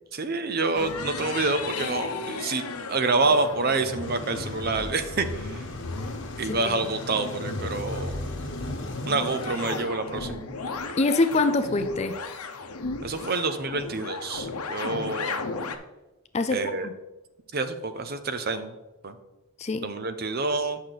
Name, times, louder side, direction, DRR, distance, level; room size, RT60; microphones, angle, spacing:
voice 1, 0.1-5.6 6.4-8.2 9.1-10.4 13.0-15.4 16.5-16.9 17.5-18.7 19.0-19.1 19.8-20.8, right 3 dB, 45° right, 9 dB, 0.6 m, -27 dB
sound 1, 0.7-15.8, left 3 dB, 85° left, 0.8 m, -35 dB
sound 2, 4.0-9.8, left 2 dB, 55° left, 1.1 m, -39 dB
voice 2, 11.0-12.1 16.3-16.9 19.6-19.9, left 3 dB, 30° left, 9 dB, 0.4 m, -24 dB
8.5 x 6.3 x 4.0 m, 1.0 s
head